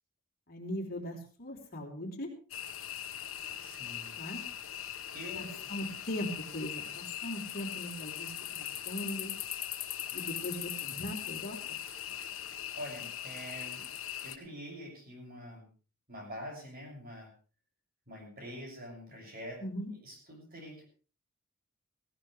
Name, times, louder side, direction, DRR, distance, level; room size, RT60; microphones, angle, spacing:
voice 1, 0.5-2.3 4.2-4.4 5.3-9.3 10.1-11.8 19.6-19.9, equal, 45° left, 1 dB, 3.5 m, -39 dB
sound 1, 2.5-14.4, left 11 dB, 70° left, 1.4 m, -40 dB
voice 2, 3.6-4.1 5.1-5.7 12.8-13.9 14.2-15.7 16.1-17.3 18.1-19.6 20.0-20.9, equal, 45° right, 1 dB, 6.8 m, -45 dB
18.0 x 17.0 x 3.3 m, 0.37 s
head